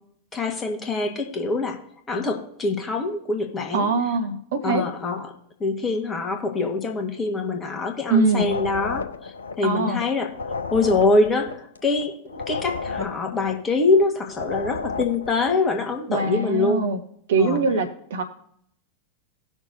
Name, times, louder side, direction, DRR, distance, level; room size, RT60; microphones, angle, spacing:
voice 1, 0.3-1.8 2.1-3.9 4.6-5.3 5.6-16.9 17.4-17.6, left 3 dB, 20° left, 3 dB, 1.7 m, -24 dB
voice 2, 3.7-4.8 8.1-8.5 9.6-10.0 16.1-17.0 17.3-18.2, right 4 dB, 60° right, 7 dB, 1.2 m, -22 dB
sound 1, 8.3-15.7, left 4 dB, 75° left, 0.7 m, -32 dB
18.0 x 6.3 x 2.7 m, 0.69 s
figure-of-eight pair, 90°, 0 cm